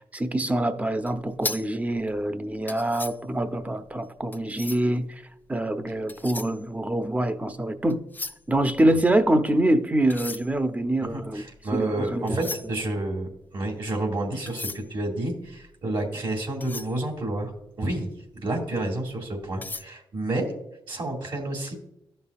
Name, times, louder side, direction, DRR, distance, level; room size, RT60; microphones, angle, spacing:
voice 1, 0.1-5.2 5.5-8.0 8.5-11.4 11.7-12.4, right 1 dB, 15° right, 0.8 m, -25 dB
sound 1, 1.0-5.0 5.8-7.5 7.8-9.5 10.0-18.0 18.4-18.6 19.0-19.8, left 3 dB, 20° left, 0.4 m, -39 dB
voice 2, 11.1-17.5 17.8-18.1 18.3-20.5 20.9-21.7, right 2 dB, 65° right, 2.3 m, -30 dB
13.5 x 5.5 x 2.4 m
cardioid pair, 70°, 9 cm